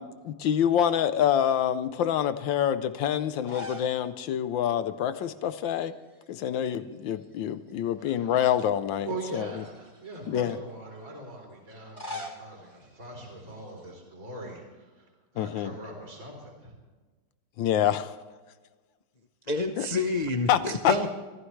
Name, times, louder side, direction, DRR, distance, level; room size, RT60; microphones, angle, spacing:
voice 1, 0.0-5.9 6.3-9.6 10.3-10.6 15.4-15.7 17.6-18.1 19.8-19.9 20.5-20.9, left 10 dB, 70° left, 13 dB, 1.3 m, -26 dB
sound 1, 3.4-4.0 4.3-4.4 5.8-6.3 6.6-7.7 8.3-8.4 9.3-10.4 11.7-13.9, left 2 dB, 10° left, 3.0 m, -43 dB
voice 2, 8.0-8.3 9.1-16.7, right 2 dB, 40° right, 0 dB, 4.1 m, -41 dB
voice 3, 19.5-21.1, left 2 dB, 55° left, 3 dB, 0.4 m, -28 dB
25.0 x 14.5 x 3.2 m, 1.3 s
omnidirectional pair, 2.4 m